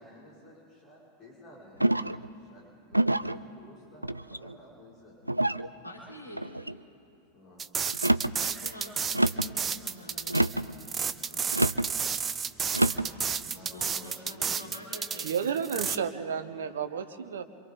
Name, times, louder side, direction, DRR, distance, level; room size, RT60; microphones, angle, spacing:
voice 1, 0.0-5.7 7.3-7.7 12.7-14.8, left 1 dB, 25° left, -6 dB, 6.1 m, -53 dB
sound 1, 1.8-2.3 2.9-3.4 4.0-4.6 5.3-5.7 6.3-6.8 7.9-8.4 9.1-9.5 10.3-10.7 11.5-11.9 12.7-13.1, right 1 dB, 85° right, 0.4 m, -26 dB
voice 2, 5.8-6.5 8.4-11.6 12.8-15.7 17.3-17.4, left 1 dB, 85° left, -4 dB, 3.4 m, -47 dB
sound 2, 7.6-16.0, right 6 dB, 20° right, 0.7 m, -32 dB
voice 3, 15.2-17.4, right 7 dB, 65° right, 11 dB, 1.1 m, -32 dB
26.5 x 25.5 x 4.0 m, 2.7 s
figure-of-eight pair, 90°, 0 cm